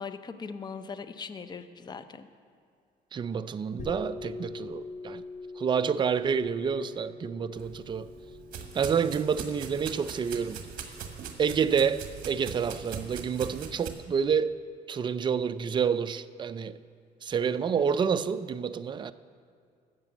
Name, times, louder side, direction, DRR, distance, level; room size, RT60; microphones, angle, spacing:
voice 1, 0.0-2.3, left 5 dB, 25° left, 0.6 m, -40 dB
voice 2, 3.1-5.2 5.6-8.1 8.7-10.6 11.4-14.5 14.9-16.8 17.2-19.1, right 6 dB, 25° right, 0.4 m, -28 dB
sound 1, 3.8-13.1, left 3 dB, 50° left, 2.0 m, -45 dB
sound 2, 7.6-13.9, right 6 dB, 55° right, 1.6 m, -41 dB
14.0 x 5.9 x 8.0 m
cardioid pair, 110°, 17 cm